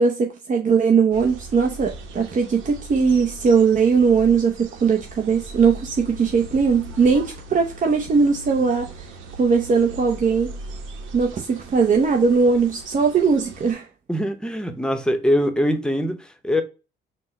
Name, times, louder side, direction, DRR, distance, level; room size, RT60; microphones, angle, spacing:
voice 1, 0.0-9.1 9.4-10.5 11.1-13.9, right 5 dB, 40° right, 0.7 m, -19 dB
sound 1, 1.1-13.7, right 2 dB, 85° right, 0.8 m, -39 dB
voice 2, 14.1-16.6, equal, 5° left, 0.8 m, -22 dB
4.3 x 2.1 x 4.1 m
cardioid pair, 90°, 20 cm